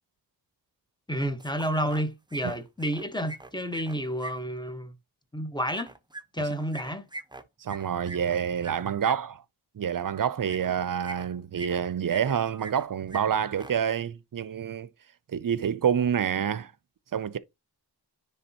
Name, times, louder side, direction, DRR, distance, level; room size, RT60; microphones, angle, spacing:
voice 1, 1.1-4.9 5.3-5.9 6.3-7.0, equal, 10° left, 1.1 m, -30 dB
sound 1, 1.4-2.0 2.3-4.3 5.7-9.1 10.5-10.7 11.0-11.8 12.1-12.8 13.1-13.2 13.5-13.7, right 2 dB, 10° right, 0.7 m, -42 dB
voice 2, 7.6-9.4 9.7-14.9 15.3-16.7 17.1-17.4, right 8 dB, 50° right, 0.6 m, -27 dB
9.8 x 3.4 x 2.8 m
cardioid pair, 45°, 43 cm